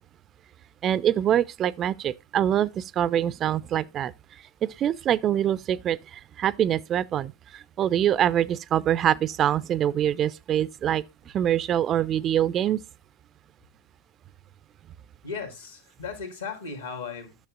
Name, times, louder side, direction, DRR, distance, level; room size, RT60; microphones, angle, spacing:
voice 1, 0.8-4.1 4.6-11.0 11.3-12.8, right 10 dB, 30° right, 0.4 m, -24 dB
voice 2, 15.2-17.5, left 5 dB, 70° left, 2.0 m, -36 dB
10.5 x 6.6 x 2.4 m
figure-of-eight pair, 90°, 0 cm